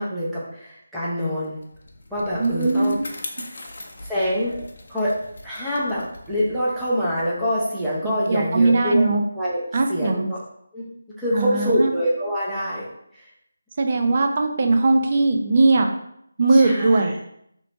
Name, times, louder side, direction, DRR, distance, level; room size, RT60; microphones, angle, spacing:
voice 1, 0.0-1.6 2.1-3.0 4.0-4.6 4.9-5.2 5.4-9.0 9.3-9.6 9.9-10.4 10.7-12.9 13.1-13.3 16.5-17.1, equal, ahead, -11 dB, 0.7 m, -25 dB
Bicycle, 1.4-8.2, left 2 dB, 60° left, 0.5 m, -41 dB
voice 2, 2.4-3.1 8.0-9.2 9.7-10.3 11.3-11.9 13.8-15.9 16.4-17.1, right 3 dB, 40° right, 4 dB, 0.4 m, -19 dB
3.0 x 2.6 x 3.3 m, 0.75 s
figure-of-eight pair, 170°, 0 cm